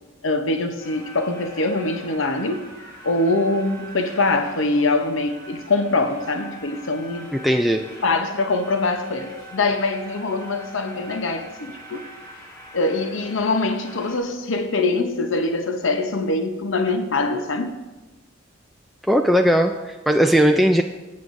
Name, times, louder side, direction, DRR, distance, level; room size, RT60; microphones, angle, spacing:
voice 1, 0.2-2.7 3.0-7.3 8.0-12.0 12.7-17.8, left 2 dB, 65° left, 6 dB, 0.8 m, -23 dB
sound 1, 0.8-14.2, equal, 15° left, 1.7 m, -43 dB
voice 2, 7.3-7.8 19.0-20.8, equal, ahead, 3 dB, 0.3 m, -18 dB
17.0 x 8.5 x 2.6 m, 1.1 s
head